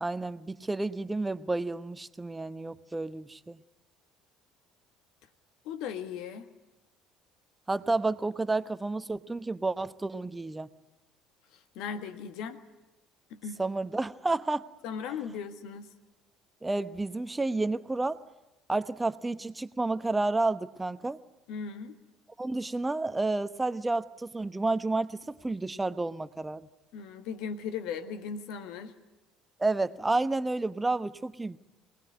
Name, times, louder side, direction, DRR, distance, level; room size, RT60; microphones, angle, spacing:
voice 1, 0.0-3.6 7.7-10.7 13.6-14.6 16.6-18.2 18.7-21.2 22.4-26.7 29.6-31.6, right 2 dB, 15° right, 12 dB, 1.0 m, -30 dB
voice 2, 5.6-6.5 11.7-12.6 13.3-13.6 14.8-15.9 21.5-21.9 26.9-28.9, left 6 dB, 60° left, 9 dB, 1.6 m, -37 dB
24.0 x 19.0 x 9.5 m, 1.0 s
figure-of-eight pair, 60°, 0 cm